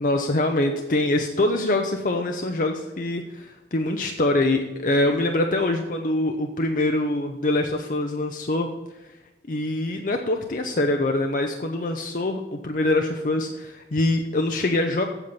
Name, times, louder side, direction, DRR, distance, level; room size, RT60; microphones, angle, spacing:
voice 1, 0.0-8.7 9.5-15.0, left 2 dB, 50° left, 4 dB, 0.6 m, -24 dB
8.0 x 7.0 x 5.8 m, 1.0 s
head